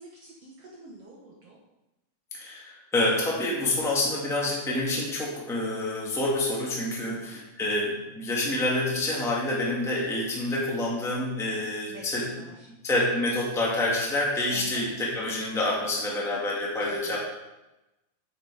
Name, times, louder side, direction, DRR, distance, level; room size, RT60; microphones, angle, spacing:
voice 1, 0.0-1.6 7.0-7.2 11.9-12.7 14.5-14.9 16.8-17.2, right 3 dB, 60° right, -3 dB, 2.2 m, -46 dB
voice 2, 2.3-12.3 12.8-17.2, left 1 dB, ahead, -4 dB, 1.7 m, -27 dB
9.0 x 8.2 x 4.9 m, 0.99 s
omnidirectional pair, 3.4 m